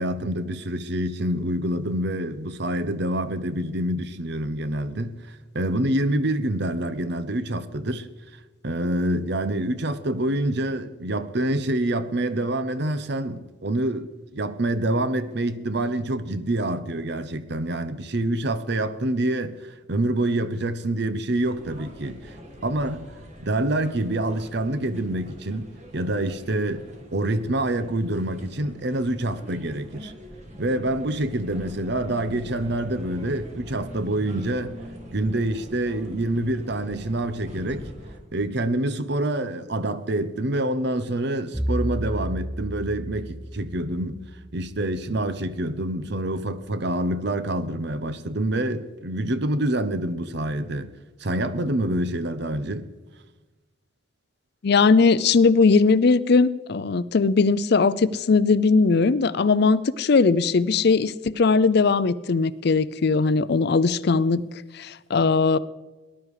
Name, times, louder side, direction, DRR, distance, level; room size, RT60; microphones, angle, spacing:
voice 1, 0.0-8.1 8.6-22.4 22.6-23.1 23.4-25.7 25.9-26.8 27.1-30.1 30.6-34.7 35.1-37.9 38.3-44.2 44.5-50.9 51.2-52.9, right 1 dB, 60° right, 0.9 m, -26 dB
sound 1, 21.4-38.2, equal, 40° right, 1.9 m, -43 dB
Bowed string instrument, 41.5-45.7, equal, 5° right, 0.4 m, -32 dB
voice 2, 54.6-64.4 64.7-65.6, left 4 dB, 60° left, 0.5 m, -19 dB
18.5 x 11.5 x 4.9 m
head